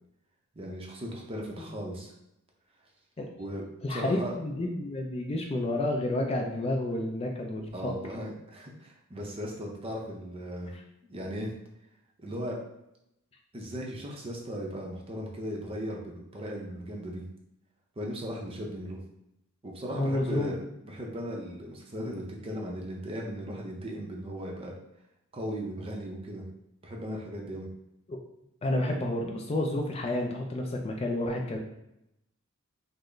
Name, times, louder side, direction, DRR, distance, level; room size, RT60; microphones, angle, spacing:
voice 1, 0.6-2.1 3.4-3.6 3.9-4.4 7.7-10.7 11.0-11.5 12.2-12.6 13.5-17.2 18.0-19.0 19.6-24.7 25.3-26.4 26.8-27.7, equal, 25° right, 0 dB, 0.5 m, -37 dB
voice 2, 3.8-7.9 19.9-20.5 28.1-28.2 28.6-31.6, left 1 dB, 30° left, 1 dB, 0.3 m, -30 dB
3.3 x 2.0 x 3.8 m, 0.83 s
head